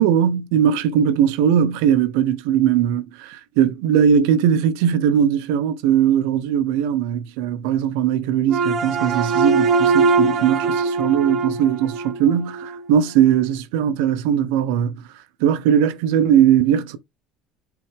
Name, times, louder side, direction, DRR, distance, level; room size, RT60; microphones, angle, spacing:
voice 1, 0.0-15.0 15.4-17.0, right 9 dB, 80° right, 0.9 m, -19 dB
sound 1, 8.5-12.8, right 4 dB, 40° right, 1.3 m, -21 dB
6.2 x 5.1 x 3.5 m
supercardioid pair, 110°, 0 cm